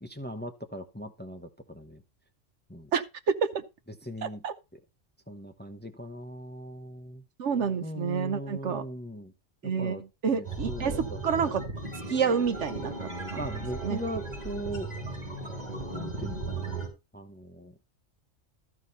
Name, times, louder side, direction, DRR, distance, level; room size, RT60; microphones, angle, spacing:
voice 1, 0.0-2.0 2.7-2.9 4.0-4.4 5.3-7.2 7.8-9.3 9.8-10.0 10.3-11.6 13.4-14.9 15.9-16.8 17.1-17.7, equal, 10° left, 0.8 m, -39 dB
voice 2, 2.9-3.6 4.2-4.5 7.4-8.8 9.6-11.6 12.1-12.9 13.3-13.4 13.8-14.0, right 6 dB, 70° right, 1.1 m, -28 dB
sound 1, 10.4-16.9, right 3 dB, 35° right, 3.5 m, -36 dB
13.5 x 4.7 x 5.5 m
omnidirectional pair, 1.3 m